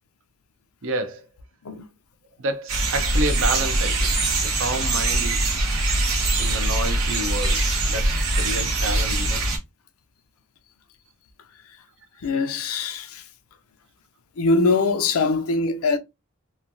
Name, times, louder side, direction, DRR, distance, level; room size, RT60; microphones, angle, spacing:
voice 1, 0.8-1.2 2.4-4.1 4.6-5.5 6.4-7.6 7.9-9.5, right 2 dB, 65° right, 0.6 m, -29 dB
sound 1, 2.7-9.6, right 2 dB, 80° right, 1.0 m, -22 dB
voice 2, 12.2-13.2 14.4-16.0, left 3 dB, 70° left, 0.5 m, -22 dB
3.1 x 2.2 x 2.5 m
head